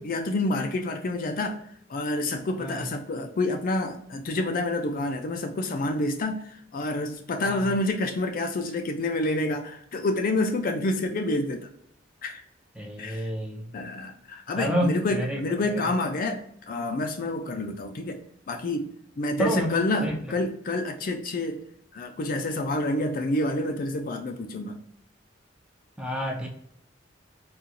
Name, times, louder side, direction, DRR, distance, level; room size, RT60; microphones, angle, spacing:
voice 1, 0.0-1.6 1.9-11.7 12.2-12.4 13.0-13.3 13.7-18.2 18.5-21.6 21.9-24.8, left 2 dB, 45° left, 5 dB, 0.4 m, -28 dB
voice 2, 12.8-13.7 14.6-15.4 15.7-15.8 19.4-20.2 26.0-26.5, equal, 5° right, -1 dB, 0.6 m, -29 dB
3.8 x 2.4 x 2.7 m, 0.69 s
head